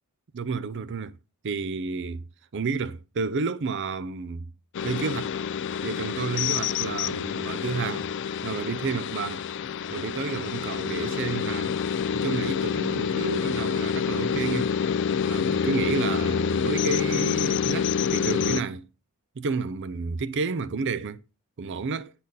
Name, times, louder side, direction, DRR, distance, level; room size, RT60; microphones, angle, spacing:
voice 1, 0.3-1.1 1.4-2.2 2.5-4.5 4.8-5.3 5.8-8.1 8.4-9.4 9.9-11.8 12.1-14.7 15.2-18.9 19.4-21.2 21.6-22.1, right 4 dB, 55° right, 0.5 m, -30 dB
sound 1, 4.7-18.6, left 7 dB, 55° left, 0.4 m, -27 dB
9.3 x 4.3 x 5.3 m
head